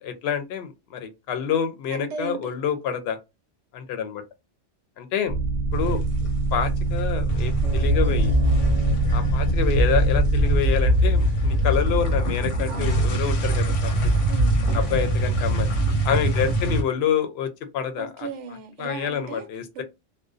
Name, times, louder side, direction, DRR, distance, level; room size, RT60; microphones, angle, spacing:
voice 1, 0.0-3.2 3.7-4.2 5.0-5.4 5.7-6.0 6.5-8.3 9.1-14.1 14.7-15.7 16.0-18.3 18.8-19.8, left 8 dB, 65° left, 0.8 m, -27 dB
voice 2, 1.9-2.6 12.7-13.2 14.3-14.7 18.0-19.5 19.7-19.8, right 5 dB, 80° right, 0.9 m, -36 dB
sound 1, 5.3-10.6, right 3 dB, 55° right, 0.4 m, -24 dB
sound 2, 5.7-6.5 6.7-16.8, equal, 90° left, 1.0 m, -22 dB
2.4 x 2.1 x 2.4 m
omnidirectional pair, 1.2 m